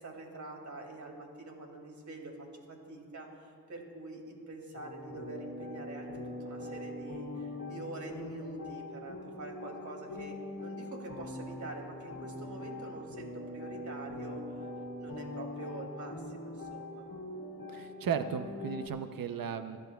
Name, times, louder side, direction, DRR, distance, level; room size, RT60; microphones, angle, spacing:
voice 1, 0.0-14.4 15.0-17.0, right 2 dB, 55° right, 1 dB, 2.5 m, -45 dB
sound 1, 4.7-18.9, left 2 dB, 55° left, 2.0 m, -42 dB
voice 2, 17.7-19.8, right 7 dB, 70° right, 10 dB, 0.6 m, -35 dB
25.5 x 11.5 x 2.3 m, 2.1 s
cardioid pair, 75°, 36 cm